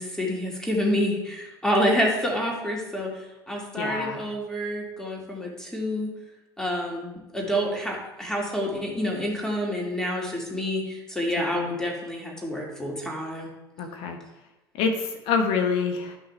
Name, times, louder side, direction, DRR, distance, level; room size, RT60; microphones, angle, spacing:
voice 1, 0.0-6.1 6.6-13.5, equal, 5° left, -2 dB, 2.6 m, -28 dB
voice 2, 3.8-4.2 11.4-11.8 13.8-14.2 14.7-16.2, left 5 dB, 50° left, 4 dB, 1.3 m, -27 dB
11.5 x 5.7 x 3.4 m, 1.0 s
figure-of-eight pair, 65°, 12 cm